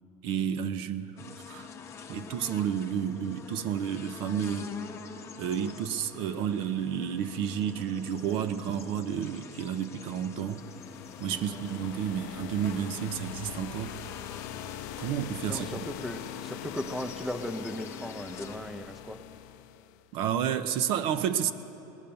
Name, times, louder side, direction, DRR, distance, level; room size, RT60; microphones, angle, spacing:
voice 1, 0.2-1.7 2.1-4.7 5.4-10.6 11.2-13.9 15.0-15.7 20.1-21.5, right 9 dB, 55° right, 11 dB, 0.6 m, -31 dB
sound 1, 1.2-18.6, left 5 dB, 25° left, 0.9 m, -45 dB
sound 2, 10.2-20.1, left 12 dB, 75° left, 0.4 m, -43 dB
voice 2, 11.3-11.6 15.5-19.2, left 1 dB, ahead, 8 dB, 0.6 m, -37 dB
19.5 x 9.1 x 6.9 m, 2.9 s
supercardioid pair, 135°, 10 cm